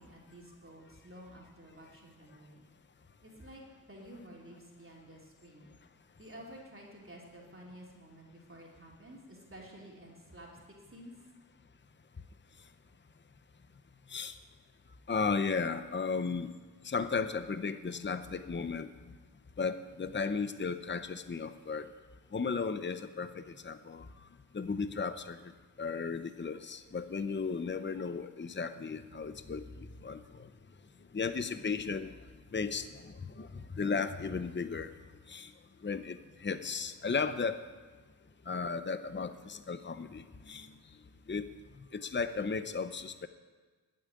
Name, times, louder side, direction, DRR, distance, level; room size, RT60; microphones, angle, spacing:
voice 1, 0.0-2.6 3.2-5.7 6.2-10.5 10.9-11.1, right 1 dB, 35° right, -3 dB, 3.0 m, -51 dB
voice 2, 15.1-16.5 16.8-18.9 19.6-21.9 22.3-24.1 24.5-25.4 25.8-30.5 31.1-32.1 32.5-34.9 35.3-35.5 35.8-37.6 38.5-40.7 41.3-41.5 41.9-43.3, left 5 dB, 30° left, 11 dB, 0.7 m, -35 dB
12.0 x 8.3 x 9.9 m, 1.4 s
wide cardioid pair, 90°, 36 cm